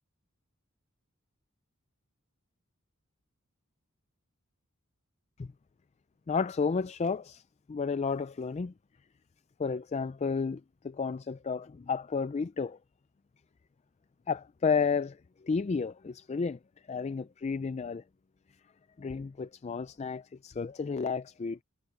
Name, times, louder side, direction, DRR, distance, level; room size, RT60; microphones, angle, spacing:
voice 1, 6.3-7.4 7.7-8.7 9.6-12.8 14.3-16.6 16.9-18.0 19.0-21.6, left 5 dB, 30° left, 0.3 m, -32 dB
head